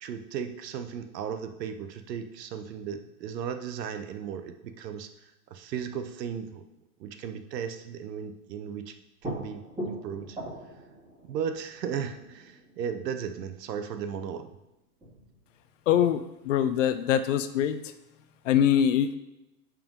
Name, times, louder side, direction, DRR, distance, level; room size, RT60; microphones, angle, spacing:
voice 1, 0.0-6.6 7.0-8.9 9.2-10.4 11.2-14.5, right 7 dB, 75° right, 9 dB, 1.0 m, -36 dB
sound 1, 9.2-14.1 14.5-14.6 15.0-16.0, right 1 dB, 10° right, 2.4 m, -41 dB
voice 2, 15.9-17.8 18.5-19.2, left 9 dB, 50° left, 11 dB, 0.5 m, -23 dB
5.9 x 5.1 x 5.2 m, 0.92 s
supercardioid pair, 160°, 49 cm